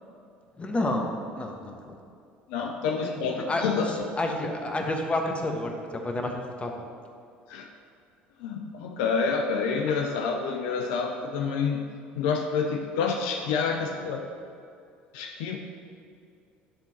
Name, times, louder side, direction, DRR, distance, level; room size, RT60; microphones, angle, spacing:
voice 1, 0.6-2.0 2.6-2.7 3.0-6.7, left 1 dB, 20° left, 2 dB, 1.3 m, -30 dB
voice 2, 2.5-4.0 7.5-7.7 8.4-11.8 12.2-14.2 15.1-15.6, left 5 dB, 75° left, 3 dB, 0.6 m, -28 dB
10.5 x 3.8 x 5.9 m, 2.4 s
hypercardioid pair, 70°, 5 cm